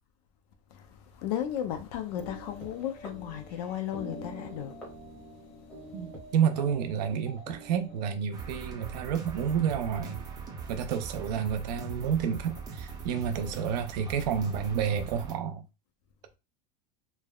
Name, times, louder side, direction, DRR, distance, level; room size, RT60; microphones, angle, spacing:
voice 1, 1.2-4.8, left 10 dB, 65° left, 0.5 m, -34 dB
sound 1, 2.1-8.2, equal, 5° left, 1.0 m, -46 dB
voice 2, 5.9-10.2 10.7-15.6, right 8 dB, 80° right, 0.6 m, -30 dB
sound 2, 8.3-15.3, right 5 dB, 20° right, 0.6 m, -41 dB
3.2 x 2.0 x 2.3 m
supercardioid pair, 155°, 21 cm